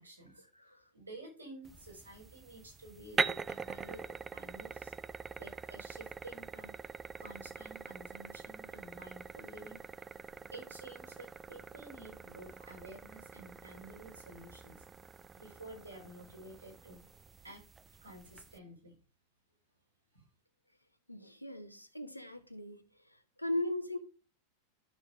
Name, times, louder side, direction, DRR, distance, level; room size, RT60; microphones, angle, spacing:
voice 1, 0.0-0.4 0.9-4.9 5.4-6.7 7.2-9.8 10.5-14.8 15.4-17.0 17.4-17.6 18.0-18.9 20.1-20.2, right 1 dB, 85° right, 4.4 m, -51 dB
sound 1, 1.6-18.6, right 5 dB, 15° right, 0.4 m, -43 dB
voice 2, 21.1-24.0, left 1 dB, 90° left, 1.1 m, -39 dB
12.5 x 6.2 x 2.5 m
figure-of-eight pair, 90°, 0 cm